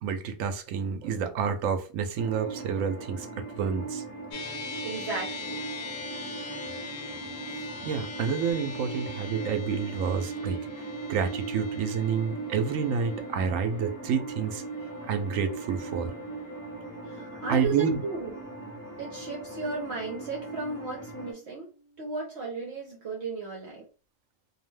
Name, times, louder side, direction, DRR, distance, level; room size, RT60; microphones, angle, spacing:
voice 1, 0.0-4.0 7.8-10.6 11.1-14.6 15.0-16.1 17.5-18.0, right 6 dB, 80° right, 1.0 m, -29 dB
sound 1, 2.2-21.3, right 3 dB, 15° left, 0.6 m, -39 dB
sound 2, 4.3-22.9, left 3 dB, 80° left, 1.0 m, -43 dB
voice 2, 4.8-5.6 17.1-18.3 19.0-21.7 22.0-23.9, right 3 dB, 60° right, 1.0 m, -35 dB
2.7 x 2.1 x 3.2 m
omnidirectional pair, 1.3 m